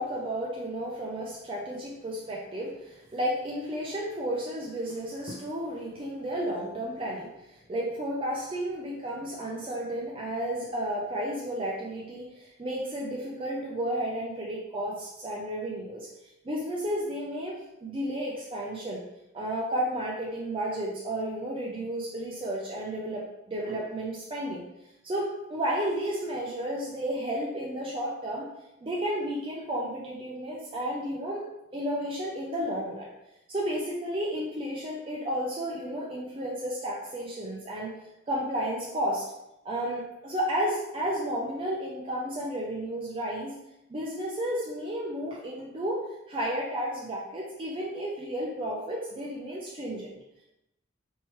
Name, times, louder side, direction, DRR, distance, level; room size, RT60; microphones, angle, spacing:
voice 1, 0.0-16.1 16.4-19.0 19.3-24.7 25.0-28.5 28.8-31.5 31.7-33.1 33.5-37.9 38.3-39.3 39.6-43.6 43.9-46.0 46.3-50.2, equal, 25° right, -4 dB, 0.5 m, -32 dB
4.5 x 3.0 x 3.1 m, 0.89 s
head